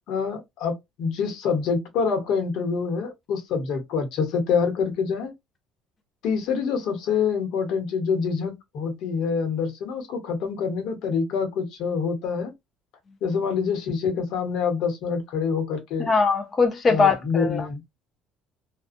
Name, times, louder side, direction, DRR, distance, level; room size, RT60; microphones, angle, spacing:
voice 1, 0.1-5.3 6.2-12.5 13.2-16.1 16.9-17.8, left 5 dB, 65° left, 1.0 m, -26 dB
voice 2, 16.0-17.7, left 4 dB, 25° left, 0.4 m, -21 dB
2.5 x 2.3 x 2.4 m
cardioid pair, 135°, 0 cm